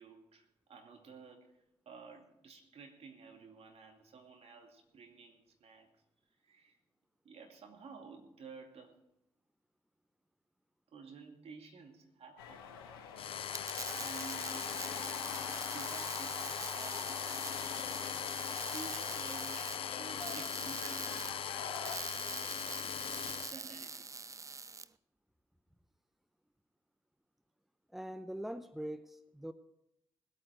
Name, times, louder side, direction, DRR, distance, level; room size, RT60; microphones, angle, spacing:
voice 1, 0.0-1.6 1.9-5.9 6.4-6.8 7.2-9.0 10.9-12.7 13.9-14.8 15.7-17.6 18.7-23.0 23.3-24.1, right 4 dB, 55° right, 3 dB, 2.4 m, -53 dB
sound 1, 12.4-22.0, left 6 dB, 85° left, 1.1 m, -45 dB
sound 2, 13.2-23.5, left 9 dB, 50° left, 0.5 m, -40 dB
sound 3, 13.4-24.9, right 4 dB, 25° right, 0.6 m, -44 dB
voice 2, 27.9-29.5, equal, ahead, 11 dB, 0.9 m, -42 dB
20.0 x 8.8 x 4.8 m, 0.83 s
hypercardioid pair, 45°, 12 cm